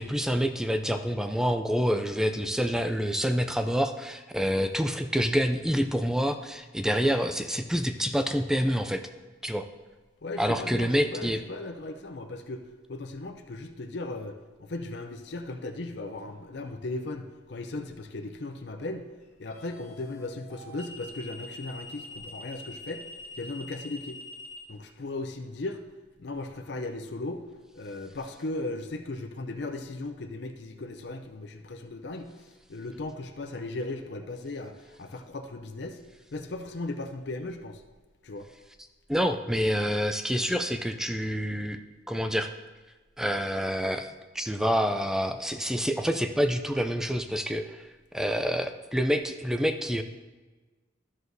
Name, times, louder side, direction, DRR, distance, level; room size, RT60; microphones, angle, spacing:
voice 1, 0.0-9.0 9.4-9.7 10.4-11.4 39.1-41.8 42.1-42.5 43.2-47.9 48.1-50.0, equal, 5° right, 7 dB, 0.3 m, -27 dB
voice 2, 10.2-19.1 19.4-23.0 23.3-24.2 24.7-25.8 26.2-27.4 27.7-36.0 36.3-37.8 38.2-38.5, left 2 dB, 60° left, 6 dB, 0.5 m, -37 dB
sound 1, 16.2-16.5 19.5-24.6, left 1 dB, 40° left, 1.3 m, -44 dB
12.5 x 6.3 x 2.7 m, 1.3 s
head